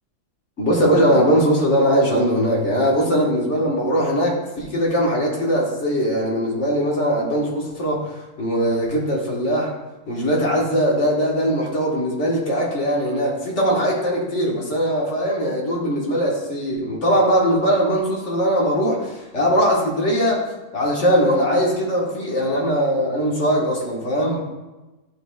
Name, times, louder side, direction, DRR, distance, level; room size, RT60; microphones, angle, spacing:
voice 1, 0.6-8.1 8.4-9.7 10.1-20.4 20.7-24.4, equal, 60° left, -3 dB, 1.7 m, -20 dB
11.5 x 3.9 x 2.3 m, 1.1 s
omnidirectional pair, 1.4 m